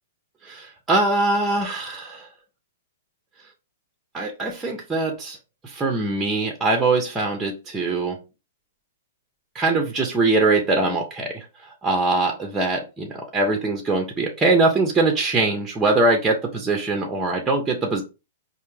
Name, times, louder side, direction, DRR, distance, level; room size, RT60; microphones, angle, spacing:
voice 1, 0.4-2.3 4.1-5.4 5.6-8.2 9.5-18.0, right 3 dB, 10° right, 2 dB, 0.8 m, -22 dB
4.4 x 2.6 x 3.3 m, 0.29 s
hypercardioid pair, 135°, 0 cm